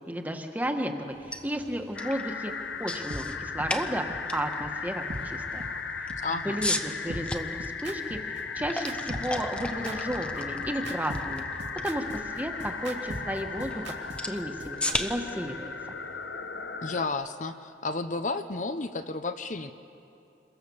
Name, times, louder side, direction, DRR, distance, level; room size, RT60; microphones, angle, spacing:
voice 1, 0.1-2.5 2.8-5.7 6.4-8.2 8.5-11.4 11.8-13.9 14.3-15.7, equal, 10° right, 5 dB, 1.5 m, -33 dB
sound 1, 1.1-17.0, left 1 dB, 5° left, 0.9 m, -38 dB
sound 2, 1.9-17.1, left 5 dB, 75° left, 1.3 m, -36 dB
sound 3, 3.1-3.2 3.6-3.7 4.1-4.2 4.6-4.7 5.1-5.2 5.6-5.7 6.1-6.2 6.6-6.7 7.1-15.0, right 1 dB, 80° right, 2.5 m, -39 dB
voice 2, 6.2-6.6 16.8-19.7, left 3 dB, 45° left, 9 dB, 0.8 m, -32 dB
28.0 x 23.0 x 7.2 m, 2.7 s
head